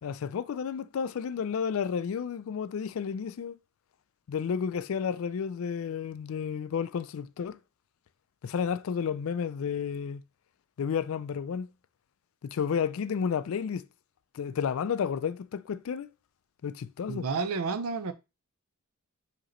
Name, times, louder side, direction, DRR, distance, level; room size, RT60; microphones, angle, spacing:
voice 1, 0.0-3.6 4.3-7.6 8.4-10.2 10.8-11.7 12.4-13.8 14.3-16.1 16.6-17.3, left 7 dB, 65° left, 0.3 m, -31 dB
voice 2, 17.1-18.1, right 4 dB, 75° right, 0.5 m, -30 dB
4.8 x 2.9 x 3.0 m
head